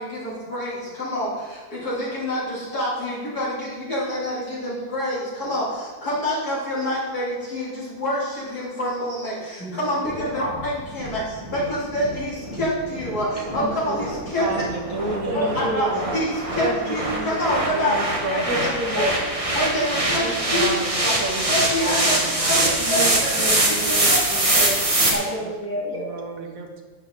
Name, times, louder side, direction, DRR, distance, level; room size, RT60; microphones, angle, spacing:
voice 1, 0.0-14.5 15.3-18.0 18.3-19.1 19.5-20.7 21.0-21.2 21.5-23.8 24.4-24.7, equal, 85° left, -8 dB, 4.4 m, -27 dB
voice 2, 10.1-10.5 13.6-14.0 14.3-14.4 15.3-16.1 16.5-17.5 18.4-19.1 20.2-20.5 22.8-24.8 25.1-26.3, right 1 dB, 10° left, -5 dB, 2.7 m, -30 dB
sound 1, 10.1-25.1, right 1 dB, 25° right, 1.6 m, -24 dB
voice 3, 14.4-15.6 17.6-18.9 20.5-23.4 25.4-25.6 25.9-26.8, right 3 dB, 65° right, 3 dB, 1.8 m, -32 dB
11.5 x 8.5 x 4.2 m, 1.3 s
omnidirectional pair, 1.6 m